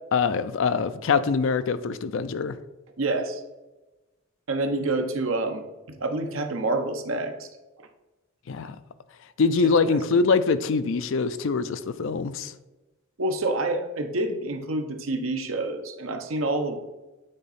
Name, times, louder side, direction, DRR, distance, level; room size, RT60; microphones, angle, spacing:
voice 1, 0.1-2.6 8.5-8.8 9.4-12.5, left 4 dB, 65° left, 13 dB, 0.4 m, -24 dB
voice 2, 3.0-3.4 4.5-7.5 9.6-10.0 13.2-16.8, right 2 dB, 70° right, 6 dB, 0.8 m, -28 dB
8.8 x 3.8 x 4.2 m, 1.1 s
head